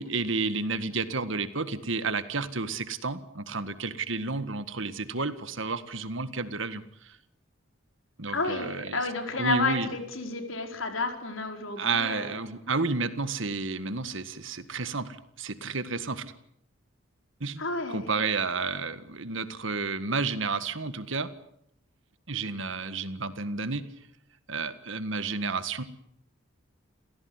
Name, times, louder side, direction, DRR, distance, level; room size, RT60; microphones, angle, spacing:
voice 1, 0.0-7.2 8.2-9.0 9.4-9.9 11.8-16.3 17.4-17.6 17.9-21.3 22.3-23.9 24.5-25.8, right 4 dB, 70° right, 12 dB, 1.8 m, -31 dB
voice 2, 8.3-12.4 17.6-18.1, left 3 dB, 75° left, 5 dB, 4.9 m, -31 dB
29.0 x 16.0 x 9.7 m, 0.78 s
head